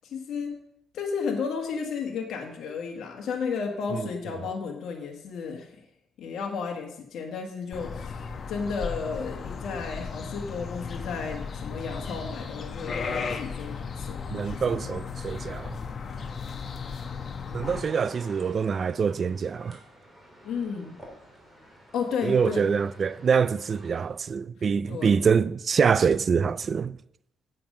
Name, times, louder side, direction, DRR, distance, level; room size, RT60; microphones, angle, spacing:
voice 1, 0.0-0.5 0.9-5.8 6.2-15.0 20.4-20.9 21.9-22.7 24.9-25.2, left 5 dB, 70° left, 1.5 m, -33 dB
sound 1, 7.7-17.8, left 5 dB, 50° left, 1.1 m, -35 dB
voice 2, 14.3-15.8 17.5-19.8 22.2-27.0, right 6 dB, 45° right, 0.3 m, -25 dB
sound 2, 17.6-24.1, equal, 5° right, 3.7 m, -50 dB
8.6 x 7.8 x 5.3 m
cardioid pair, 90°, 0 cm